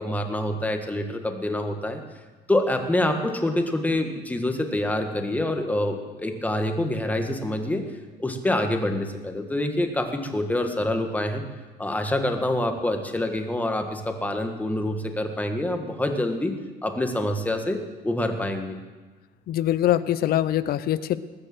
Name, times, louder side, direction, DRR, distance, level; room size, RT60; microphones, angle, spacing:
voice 1, 0.0-2.0 2.5-7.9 8.2-11.4 11.8-16.5 16.8-18.8, left 1 dB, 10° left, 5 dB, 1.6 m, -26 dB
voice 2, 19.5-21.2, left 12 dB, 65° left, 16 dB, 0.7 m, -23 dB
20.0 x 6.8 x 7.7 m, 1.3 s
cardioid pair, 110°, 17 cm